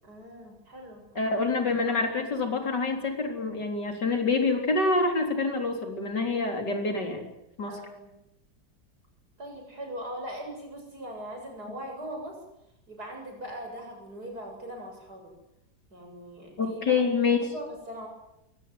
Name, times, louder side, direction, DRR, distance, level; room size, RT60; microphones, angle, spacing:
voice 1, 0.0-1.5 7.6-8.1 9.4-12.3 12.9-15.3 15.9-17.0 17.4-18.1, equal, 65° right, 2 dB, 8.0 m, -40 dB
voice 2, 1.2-7.3 7.6-7.8 16.6-17.4, left 3 dB, 75° left, 4 dB, 4.5 m, -26 dB
22.5 x 18.5 x 9.7 m, 0.83 s
omnidirectional pair, 1.9 m